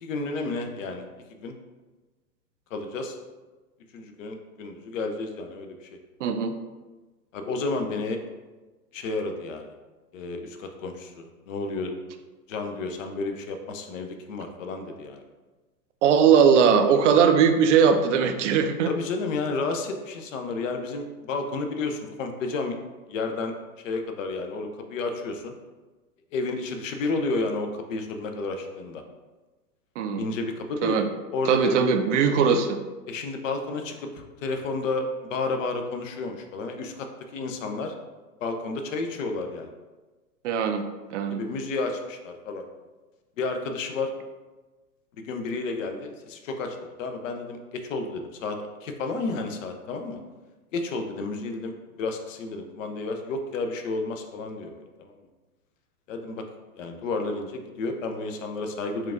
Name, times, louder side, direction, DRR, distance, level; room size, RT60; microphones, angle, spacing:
voice 1, 0.0-1.1 1.4-1.5 2.7-3.2 3.9-5.9 7.3-8.2 8.9-9.7 10.1-11.9 12.5-15.2 18.9-22.8 23.1-23.5 23.8-25.5 26.3-29.0 30.2-31.0 31.3-31.8 33.1-37.9 38.4-39.7 41.3-42.6 43.4-44.1 45.2-50.2 50.7-55.1 56.1-56.4 56.8-59.1, left 3 dB, 55° left, 5 dB, 0.7 m, -31 dB
voice 2, 6.2-6.5 16.0-18.9 30.0-30.3 30.8-31.1 31.5-32.8 40.4-40.8 41.1-41.4, right 7 dB, 50° right, 7 dB, 0.5 m, -20 dB
4.5 x 2.4 x 3.6 m, 1.2 s
hypercardioid pair, 115°, 48 cm